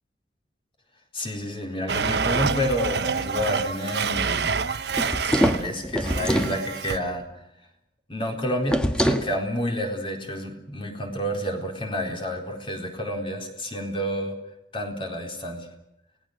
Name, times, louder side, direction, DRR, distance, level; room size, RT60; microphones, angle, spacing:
voice 1, 1.1-4.6 5.2-7.2 8.1-14.3 14.7-15.7, equal, 30° left, 3 dB, 4.2 m, -29 dB
Domestic sounds home sounds, 1.9-5.7 6.0-7.0, right 5 dB, 70° right, 0.9 m, -27 dB
sound 1, 4.9-6.6 8.7-9.3, equal, 5° left, 1.6 m, -23 dB
29.5 x 18.5 x 6.6 m, 0.84 s
head